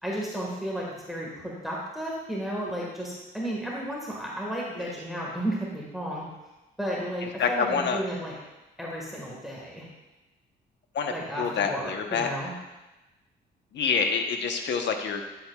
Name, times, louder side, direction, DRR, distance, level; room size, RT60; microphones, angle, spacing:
voice 1, 0.0-6.3 6.8-8.3 8.8-9.8 11.1-12.5, equal, ahead, -4 dB, 1.6 m, -33 dB
voice 2, 7.2-8.0 10.9-12.3 13.7-15.2, left 5 dB, 65° left, 5 dB, 1.0 m, -27 dB
10.0 x 7.8 x 2.3 m, 1.1 s
cardioid pair, 90°, 20 cm